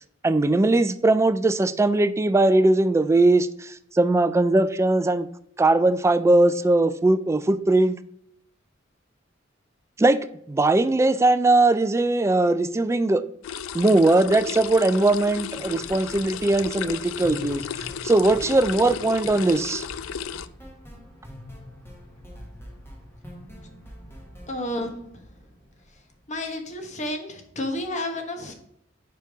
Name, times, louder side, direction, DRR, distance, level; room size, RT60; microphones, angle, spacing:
voice 1, 0.2-5.3 5.6-8.0 10.0-10.2 10.5-13.2 13.7-17.6 18.0-19.8, right 2 dB, 15° right, 0.3 m, -20 dB
sound 1, 13.4-20.5, left 8 dB, 75° left, 0.3 m, -34 dB
sound 2, 15.5-26.5, equal, 10° left, 1.3 m, -44 dB
voice 2, 24.5-25.2 26.3-28.5, left 1 dB, 35° left, 1.1 m, -31 dB
5.2 x 4.5 x 4.7 m
head